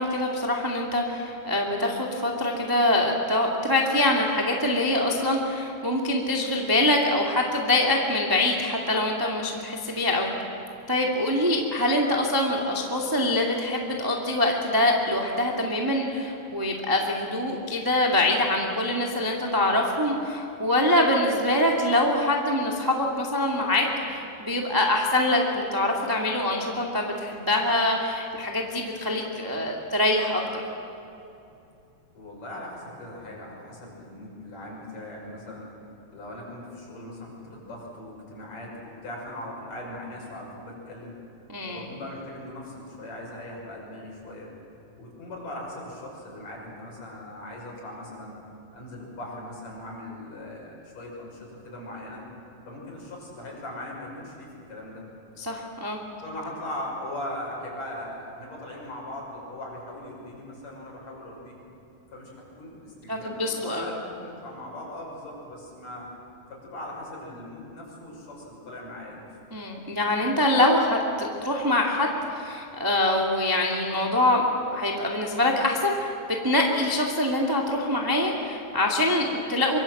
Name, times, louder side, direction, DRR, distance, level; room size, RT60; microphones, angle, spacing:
voice 1, 0.0-10.3 10.9-30.4 41.5-41.8 55.4-56.0 63.1-63.9 69.5-74.5 74.7-76.1 76.4-79.8, left 1 dB, 10° right, -1 dB, 1.2 m, -24 dB
voice 2, 32.1-35.7 36.1-41.2 41.7-44.5 45.0-48.3 48.7-52.2 52.7-55.1 56.2-61.6 62.1-66.1 66.5-69.3, left 1 dB, 45° left, -2 dB, 7.5 m, -39 dB
25.5 x 24.0 x 8.0 m, 2.7 s
omnidirectional pair, 4.6 m